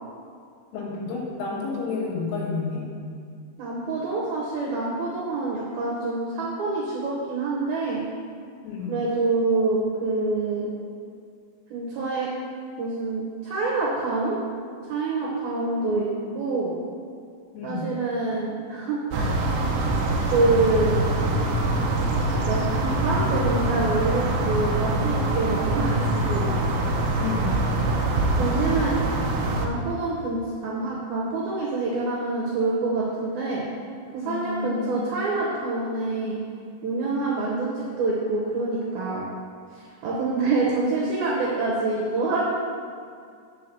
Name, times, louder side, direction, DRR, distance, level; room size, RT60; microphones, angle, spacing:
voice 1, 0.7-2.9 8.6-8.9 17.5-17.8 27.2-27.7 34.2-34.9, left 4 dB, 85° left, -4 dB, 3.8 m, -30 dB
voice 2, 3.6-8.0 8.9-10.7 11.7-12.3 12.8-14.4 14.8-16.1 16.3-16.8 17.6-19.4 20.3-21.0 22.3-26.6 28.3-28.9 29.6-33.7 34.1-36.4 36.8-39.2 39.7-42.5, right 3 dB, 70° right, -4 dB, 2.3 m, -26 dB
sound 1, 19.1-29.7, right 2 dB, 85° right, 2.1 m, -24 dB
7.4 x 4.9 x 6.9 m, 2.3 s
omnidirectional pair, 5.3 m